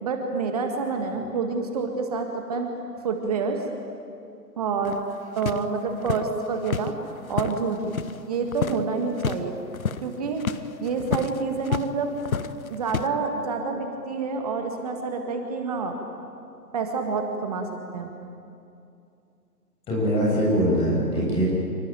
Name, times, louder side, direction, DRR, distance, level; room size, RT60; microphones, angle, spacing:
voice 1, 0.0-2.7 3.0-3.6 4.6-5.0 5.3-7.0 7.3-8.0 8.3-9.6 10.0-12.1 12.7-16.0 16.7-18.3 21.1-21.4, right 4 dB, 25° right, 4 dB, 1.7 m, -28 dB
sound 1, 4.8-8.2 8.5-8.8 9.1-9.4 9.7-11.9 12.2-13.1, left 6 dB, 55° left, 1.2 m, -30 dB
voice 2, 19.9-21.4, equal, 10° left, -5 dB, 7.6 m, -22 dB
27.5 x 23.5 x 9.1 m, 2.5 s
figure-of-eight pair, 150°, 49 cm